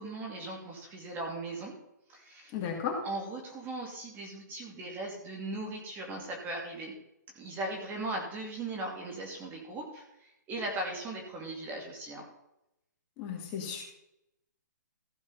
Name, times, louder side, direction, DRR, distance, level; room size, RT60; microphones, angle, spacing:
voice 1, 0.0-1.7 2.1-2.5 3.0-6.9 7.3-12.2, right 2 dB, 20° right, 0 dB, 2.5 m, -38 dB
voice 2, 2.5-3.0 13.2-13.8, left 6 dB, 30° left, 0 dB, 2.6 m, -34 dB
15.5 x 5.2 x 5.6 m, 0.85 s
hypercardioid pair, 145°, 10 cm